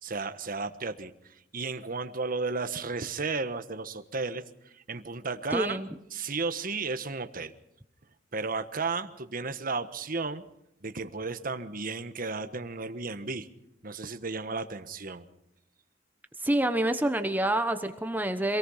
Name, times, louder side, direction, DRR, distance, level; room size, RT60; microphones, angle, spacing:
voice 1, 0.0-5.8 6.1-7.5 8.3-10.4 10.8-13.5 13.8-15.3, right 4 dB, 50° right, 10 dB, 1.3 m, -34 dB
voice 2, 5.5-5.9 16.4-18.6, right 1 dB, 10° right, 8 dB, 1.0 m, -27 dB
26.5 x 18.5 x 5.7 m, 0.79 s
head